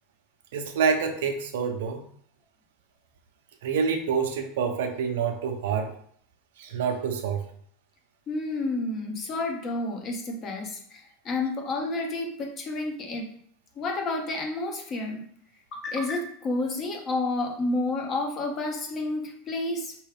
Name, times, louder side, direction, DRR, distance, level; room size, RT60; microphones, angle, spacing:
voice 1, 0.5-2.0 3.6-5.9 6.6-7.4, right 6 dB, 85° right, 5 dB, 0.7 m, -27 dB
voice 2, 8.3-13.3 13.8-15.3 15.7-19.9, left 2 dB, 25° left, 3 dB, 0.8 m, -30 dB
4.6 x 3.0 x 3.4 m, 0.62 s
supercardioid pair, 155°, 0 cm